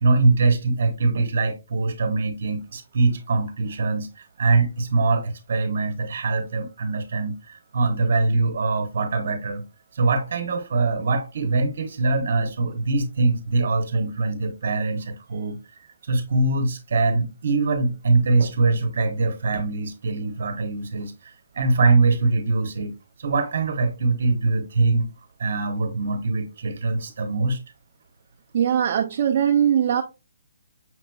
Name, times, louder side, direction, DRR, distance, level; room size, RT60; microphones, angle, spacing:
voice 1, 0.0-4.1 4.4-9.6 10.0-15.6 16.1-21.1 21.6-22.9 23.2-25.1 25.4-27.6, right 3 dB, 50° right, 0.9 m, -23 dB
voice 2, 28.5-30.0, right 9 dB, 35° right, 0.3 m, -20 dB
5.8 x 2.9 x 2.2 m
hypercardioid pair, 175°, 0 cm